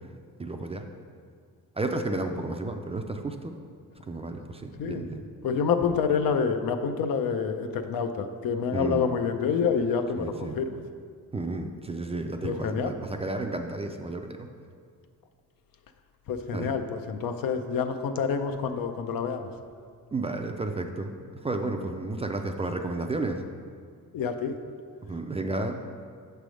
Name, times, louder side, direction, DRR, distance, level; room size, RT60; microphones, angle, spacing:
voice 1, 0.4-0.9 1.8-3.5 4.1-5.2 8.7-9.1 10.2-10.5 11.3-14.5 16.5-16.7 20.1-21.1 21.4-23.4 25.1-25.8, right 2 dB, 20° right, 4 dB, 0.3 m, -32 dB
voice 2, 4.8-5.1 5.4-10.8 12.4-12.9 16.3-19.5 24.1-24.6, left 6 dB, 75° left, 7 dB, 0.6 m, -27 dB
7.6 x 3.4 x 6.2 m, 2.1 s
cardioid pair, 130°, 34 cm